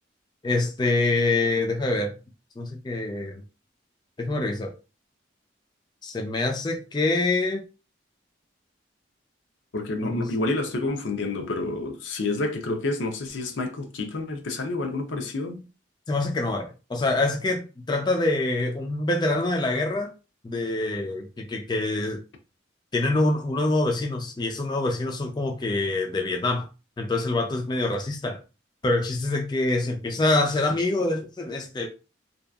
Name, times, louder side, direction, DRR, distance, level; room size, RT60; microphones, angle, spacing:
voice 1, 0.4-2.2 2.6-3.4 4.2-4.7 6.0-7.6 10.0-10.2 16.1-20.1 20.4-22.2 22.9-26.7 27.0-28.4 28.8-31.9, left 2 dB, 25° left, 0.3 m, -25 dB
voice 2, 9.7-15.6, left 2 dB, 90° left, 0.6 m, -29 dB
2.7 x 2.3 x 2.2 m
head